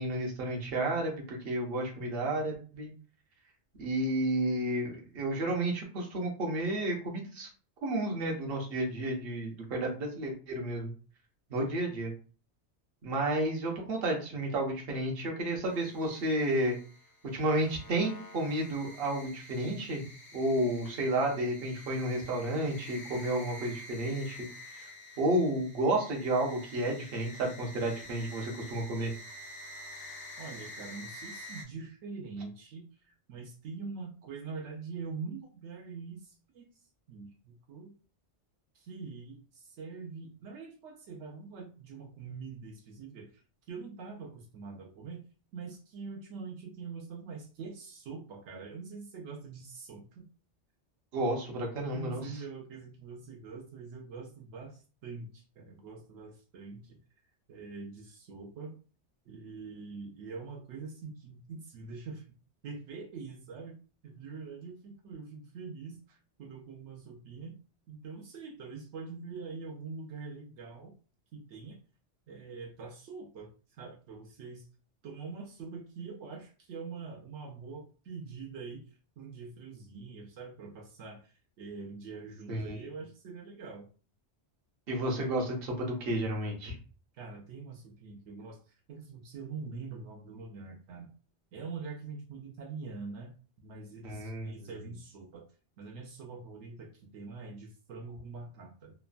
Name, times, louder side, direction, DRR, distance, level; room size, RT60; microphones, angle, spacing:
voice 1, 0.0-2.9 3.8-7.5 7.8-10.9 11.5-12.1 13.0-16.8 17.3-20.0 20.3-24.5 24.7-24.9 25.2-29.1 51.1-52.4 82.5-82.8 84.9-86.8 94.0-94.7, right 1 dB, 60° right, 0 dB, 1.0 m, -31 dB
sound 1, 15.7-31.6, left 1 dB, 40° left, 0.3 m, -48 dB
voice 2, 30.4-36.8 37.1-37.9 38.7-45.2 45.5-50.3 51.9-57.0 57.5-58.8 59.3-62.3 62.6-67.6 67.9-70.9 71.3-71.8 72.3-74.7 75.0-78.9 79.2-83.9 87.1-91.1 91.5-95.4 95.8-98.9, right 4 dB, 85° right, 0 dB, 0.9 m, -44 dB
3.1 x 2.1 x 2.4 m, 0.37 s
omnidirectional pair, 1.2 m